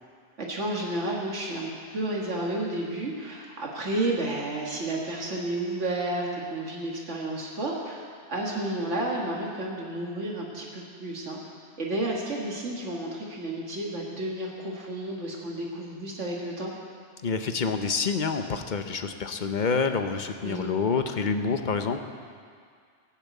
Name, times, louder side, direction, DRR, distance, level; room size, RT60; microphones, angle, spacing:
voice 1, 0.4-11.4 11.8-16.7 20.4-20.7, right 1 dB, 85° right, -2 dB, 2.0 m, -31 dB
voice 2, 17.2-22.0, left 5 dB, 45° left, 7 dB, 0.9 m, -27 dB
17.5 x 7.2 x 8.3 m, 2.1 s
omnidirectional pair, 1.2 m